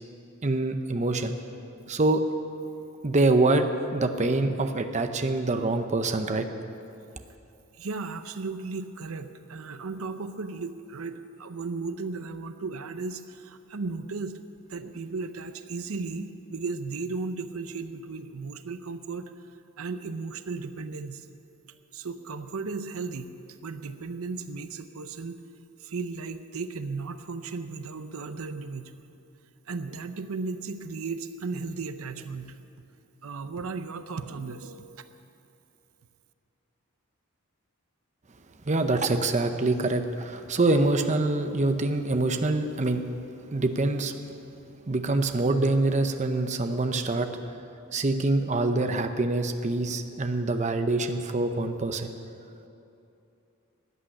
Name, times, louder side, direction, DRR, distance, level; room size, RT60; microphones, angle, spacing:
voice 1, 0.4-1.3 1.9-2.2 3.0-6.5 38.7-43.0 43.5-44.1 44.9-47.3 47.9-52.1, right 2 dB, 35° right, 7 dB, 0.7 m, -25 dB
voice 2, 7.8-14.4 14.7-19.3 19.8-21.3 21.9-23.3 23.6-25.4 25.8-29.1 29.7-32.6 33.2-35.0, right 4 dB, 80° right, 10 dB, 0.7 m, -35 dB
14.0 x 8.8 x 9.8 m, 2.7 s
head